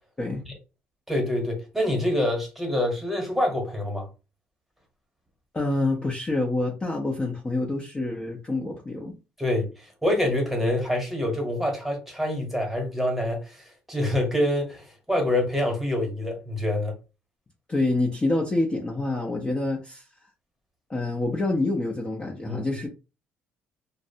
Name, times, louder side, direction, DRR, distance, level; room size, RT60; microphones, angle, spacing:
voice 1, 1.1-4.1 9.4-16.9 22.5-22.7, left 1 dB, 5° right, 1.1 m, -26 dB
voice 2, 5.5-9.1 17.7-20.1 20.9-22.9, left 2 dB, 20° left, 0.6 m, -27 dB
2.5 x 2.1 x 2.7 m
cardioid pair, 100°, 4 cm